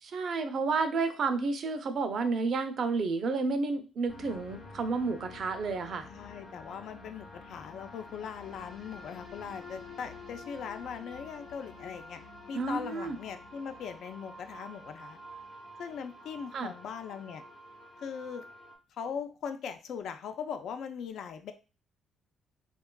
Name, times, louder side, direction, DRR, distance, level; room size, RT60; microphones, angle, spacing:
voice 1, 0.0-6.1 12.5-13.2 16.5-16.7, right 4 dB, 60° right, 8 dB, 0.5 m, -31 dB
sound 1, 4.1-18.7, left 2 dB, 55° left, 0.8 m, -49 dB
voice 2, 6.1-12.2 12.5-15.2 15.8-17.4 18.0-18.4 19.0-21.5, left 7 dB, 75° left, 8 dB, 0.4 m, -40 dB
3.7 x 2.3 x 2.2 m, 0.33 s
cardioid pair, 90°, 0 cm